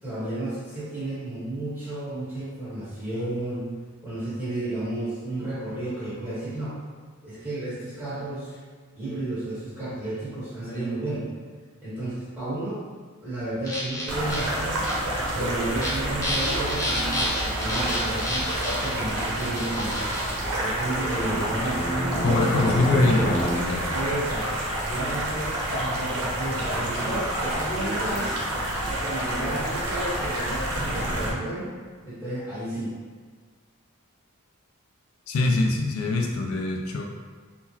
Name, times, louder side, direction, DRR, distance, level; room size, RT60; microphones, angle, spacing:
voice 1, 0.0-3.7 4.0-6.8 7.2-8.6 8.9-11.3 11.8-12.8 13.2-20.0 20.6-22.2 22.7-23.3 23.9-24.5 24.9-28.3 28.9-31.7 32.0-32.9, right 1 dB, 10° right, -13 dB, 1.5 m, -32 dB
sound 1, 13.6-14.5 14.8-14.9 15.7-15.9 16.2-20.4 21.2-23.5, left 1 dB, 15° left, 0.7 m, -30 dB
sound 2, 14.1-31.3, right 1 dB, 85° right, 0.7 m, -28 dB
voice 2, 22.2-24.0 35.3-37.0, left 2 dB, 70° left, 1 dB, 0.3 m, -24 dB
3.7 x 2.2 x 2.8 m, 1.5 s
head